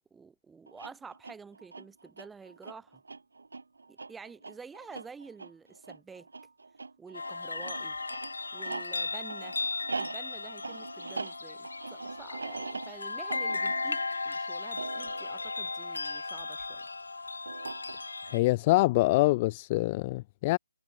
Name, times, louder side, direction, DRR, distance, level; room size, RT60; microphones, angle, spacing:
voice 1, 0.1-3.0 3.9-6.3 7.0-8.0 8.5-9.6 10.0-16.9, right 5 dB, 5° right, 1.6 m, -49 dB
sound 1, 0.7-16.4 17.5-18.3, right 3 dB, 75° right, 2.7 m, -42 dB
sound 2, 7.1-18.4, left 3 dB, 80° left, 3.7 m, -36 dB
voice 2, 18.3-20.6, left 20 dB, 20° left, 0.4 m, -25 dB
hypercardioid pair, 165°, 0 cm